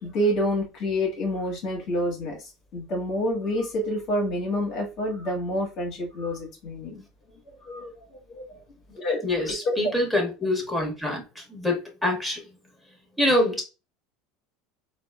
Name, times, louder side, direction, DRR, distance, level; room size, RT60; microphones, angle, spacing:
voice 1, 0.0-2.4 2.7-7.0 7.6-7.9 8.3-8.5 8.9-9.9, equal, 55° left, 1.3 m, -28 dB
voice 2, 9.2-12.4 13.2-13.6, left 1 dB, ahead, 1.4 m, -25 dB
3.6 x 2.4 x 2.3 m
hypercardioid pair, 80°, 0 cm